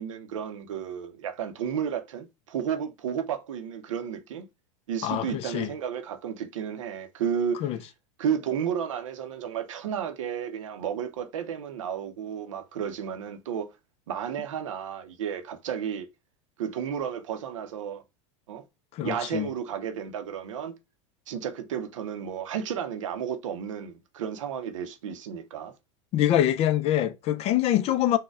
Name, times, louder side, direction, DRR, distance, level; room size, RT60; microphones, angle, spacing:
voice 1, 0.0-4.4 4.9-7.7 8.2-13.7 14.1-16.1 16.6-18.0 18.5-18.6 19.0-20.7 21.3-25.7, right 8 dB, 80° right, 0.6 m, -32 dB
voice 2, 5.0-5.7 7.6-7.8 18.9-19.5 26.1-28.2, left 12 dB, 40° left, 0.4 m, -24 dB
4.0 x 2.1 x 2.3 m
hypercardioid pair, 100°, 16 cm